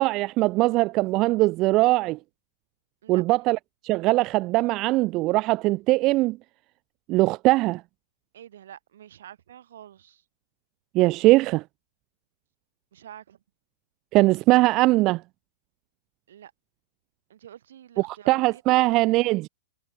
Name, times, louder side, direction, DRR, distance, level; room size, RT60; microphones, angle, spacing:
voice 1, 0.0-2.2 3.1-3.6 3.8-6.4 7.1-7.8 10.9-11.6 14.1-15.2 18.0-19.5, right 20 dB, 25° right, 0.7 m, -21 dB
voice 2, 8.3-10.2 12.9-13.4 16.3-16.5 17.3-19.3, right 10 dB, 60° right, 6.1 m, -47 dB
hypercardioid pair, 175°, 0 cm